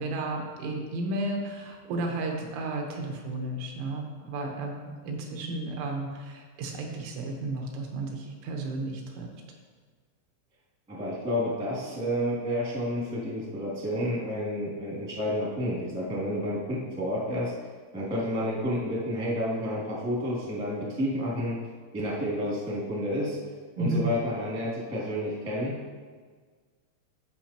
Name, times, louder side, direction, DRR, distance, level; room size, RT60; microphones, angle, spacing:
voice 1, 0.0-9.3 23.8-24.1, right 2 dB, 85° right, 1 dB, 3.7 m, -33 dB
voice 2, 10.9-17.5 17.9-21.5 21.9-23.4 23.8-25.7, equal, 5° right, -7 dB, 0.7 m, -30 dB
14.5 x 5.4 x 3.0 m, 1.5 s
omnidirectional pair, 5.4 m